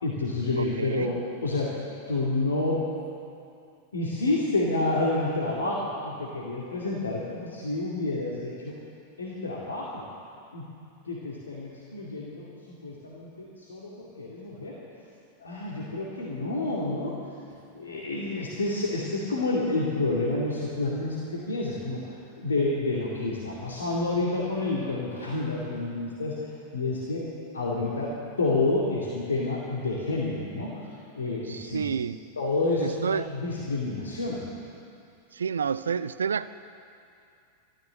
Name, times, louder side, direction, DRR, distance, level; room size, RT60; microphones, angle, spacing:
voice 1, 0.0-1.8 2.1-2.9 3.9-8.7 9.2-10.1 10.5-10.7 11.1-14.8 15.4-17.2 17.7-22.1 22.4-26.4 26.7-30.8 31.1-31.9 32.4-34.5, left 2 dB, 70° left, -5 dB, 2.3 m, -29 dB
voice 2, 0.6-1.1 31.5-32.2 32.8-33.3 35.3-36.5, right 6 dB, 70° right, 15 dB, 0.4 m, -29 dB
14.0 x 13.0 x 7.7 m, 2.5 s
figure-of-eight pair, 90°, 0 cm